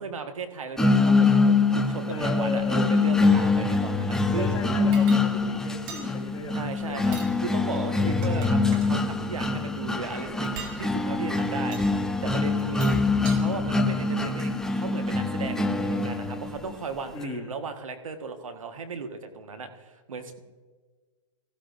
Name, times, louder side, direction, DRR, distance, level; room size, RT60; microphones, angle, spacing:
voice 1, 0.0-4.6 6.5-10.5 10.8-13.0 13.3-20.4, right 5 dB, 80° right, 6 dB, 1.5 m, -36 dB
sound 1, 0.8-16.7, left 3 dB, 5° left, 0.5 m, -24 dB
voice 2, 2.1-3.0 4.4-7.3 7.9-8.3 17.1-17.5, left 3 dB, 20° left, -6 dB, 2.5 m, -36 dB
sound 2, 4.9-5.2 5.9-6.1 7.0-7.3 8.0-8.9 10.4-10.8 11.7-11.9 12.6-13.4, right 6 dB, 45° right, 2.3 m, -40 dB
18.5 x 15.0 x 2.6 m, 1.4 s
hypercardioid pair, 125°, 17 cm